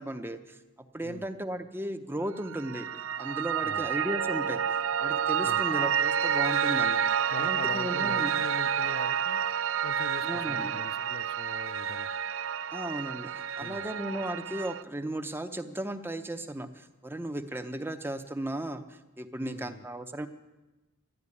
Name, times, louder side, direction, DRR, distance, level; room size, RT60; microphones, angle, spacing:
voice 1, 0.0-2.9 3.2-8.3 10.2-10.7 12.7-20.3, right 1 dB, 10° right, 8 dB, 0.7 m, -36 dB
Piano, 2.4-14.8, right 8 dB, 70° right, 0.4 m, -29 dB
voice 2, 7.3-9.5 9.8-12.1 13.6-13.8 19.4-19.9, left 4 dB, 50° left, 11 dB, 0.5 m, -43 dB
12.0 x 10.0 x 9.7 m, 1.1 s
head